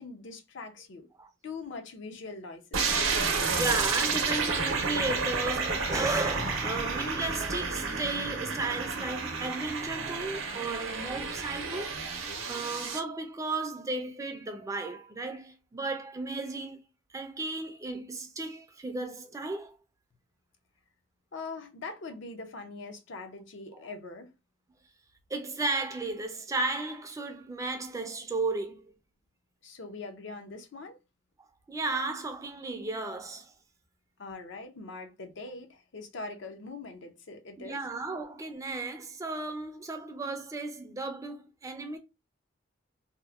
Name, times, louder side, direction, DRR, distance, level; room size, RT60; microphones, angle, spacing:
voice 1, 0.0-1.1 1.4-2.9 21.3-24.3 29.6-31.0 34.2-37.8, left 3 dB, 65° left, 0.5 m, -42 dB
sound 1, 2.7-13.0, right 4 dB, 80° right, 0.6 m, -31 dB
voice 2, 3.5-11.9 12.5-16.8 17.1-19.8 23.7-23.8 25.3-28.8 31.7-33.5 37.6-42.0, right 3 dB, 15° right, 0.4 m, -34 dB
2.8 x 2.1 x 2.3 m
head